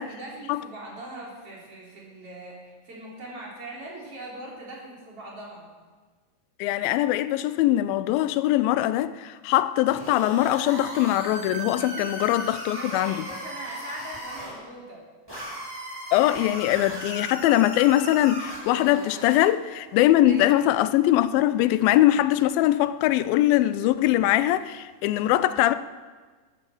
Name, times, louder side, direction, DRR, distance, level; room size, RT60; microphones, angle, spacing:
voice 1, 0.0-5.7 11.8-15.0 20.3-20.5, right 1 dB, 40° right, 4.4 m, -41 dB
voice 2, 6.6-13.3 16.1-25.8, left 14 dB, 85° left, 2.4 m, -22 dB
sound 1, 9.9-14.5 15.3-19.5, right 1 dB, 5° right, 6.4 m, -37 dB
14.0 x 12.0 x 7.1 m
omnidirectional pair, 4.1 m